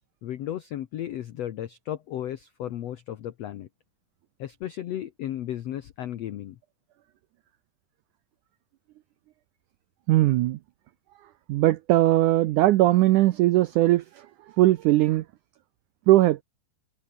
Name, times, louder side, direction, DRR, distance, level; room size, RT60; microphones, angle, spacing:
voice 1, 0.2-3.7 4.4-6.6, left 11 dB, 85° left, 1.4 m, -34 dB
voice 2, 10.1-10.6 11.5-14.0 14.6-15.2 16.1-16.4, right 16 dB, 85° right, 1.7 m, -19 dB
omnidirectional pair, 4.5 m